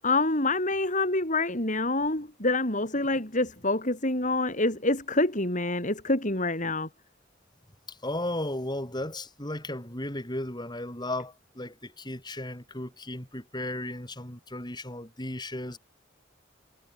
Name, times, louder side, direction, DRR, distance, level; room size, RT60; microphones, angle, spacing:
voice 1, 0.0-6.9, left 2 dB, 40° left, 8.0 m, -26 dB
voice 2, 7.9-15.8, left 1 dB, 20° left, 7.9 m, -35 dB
head